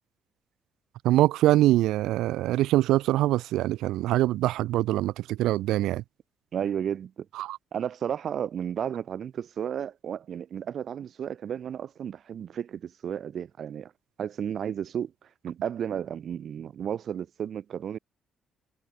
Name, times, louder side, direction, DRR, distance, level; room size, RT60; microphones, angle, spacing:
voice 1, 1.0-6.0 7.4-7.6, right 15 dB, 90° right, 0.5 m, -24 dB
voice 2, 6.5-7.3 7.7-13.9 14.2-15.1 15.4-18.0, right 8 dB, 60° right, 0.8 m, -33 dB
cardioid pair, 90°, 0 cm